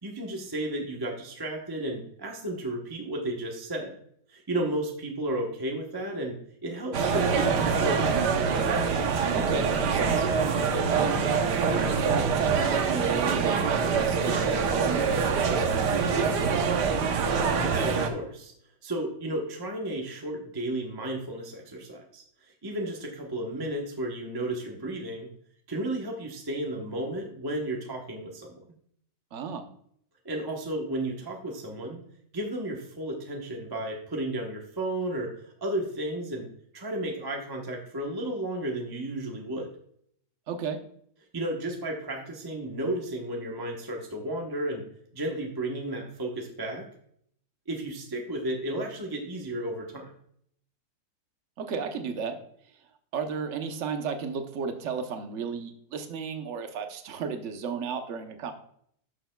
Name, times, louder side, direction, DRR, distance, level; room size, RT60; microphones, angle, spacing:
voice 1, 0.0-3.9 4.3-8.4 17.5-18.5 18.8-25.3 25.7-28.6 30.2-32.0 32.3-36.5 36.7-39.7 41.3-44.8 45.1-46.9 47.7-50.1, right 1 dB, 20° right, 1 dB, 0.8 m, -33 dB
sound 1, 6.9-18.1, right 5 dB, 75° right, 1.5 m, -25 dB
voice 2, 9.3-10.3 10.9-11.2 11.6-16.7 29.3-29.6 40.5-40.8 51.6-52.4 53.1-58.5, right 6 dB, 50° right, 6 dB, 1.1 m, -33 dB
12.5 x 6.7 x 2.2 m, 0.67 s
omnidirectional pair, 1.8 m